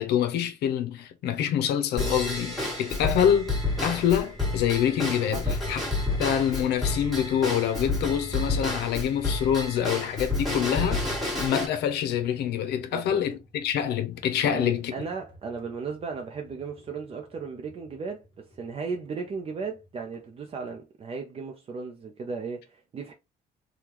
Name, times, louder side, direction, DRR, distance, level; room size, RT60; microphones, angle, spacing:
voice 1, 0.0-5.8 6.2-11.1 11.4-14.9, left 9 dB, 75° left, 0.6 m, -26 dB
Drum kit / Drum / Bell, 2.0-11.7, left 2 dB, ahead, 1.5 m, -30 dB
sound 1, 4.3-20.8, left 1 dB, 30° left, 1.4 m, -49 dB
voice 2, 12.9-13.2 14.4-23.1, right 5 dB, 35° right, 0.6 m, -36 dB
3.5 x 2.3 x 2.9 m
cardioid pair, 110°, 17 cm